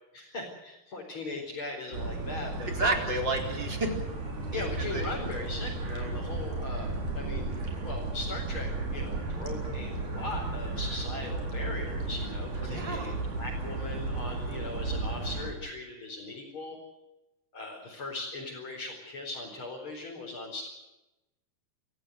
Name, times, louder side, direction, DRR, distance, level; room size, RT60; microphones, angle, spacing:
voice 1, 0.1-3.0 4.5-7.6 7.8-16.8 17.5-20.7, left 2 dB, 35° left, -3 dB, 5.4 m, -39 dB
sound 1, 1.9-15.5, right 3 dB, 60° right, 5.6 m, -34 dB
voice 2, 2.7-3.9 4.5-5.1 12.6-13.2, right 2 dB, 30° right, 3 dB, 4.6 m, -31 dB
27.5 x 16.0 x 8.2 m, 0.98 s
omnidirectional pair, 4.0 m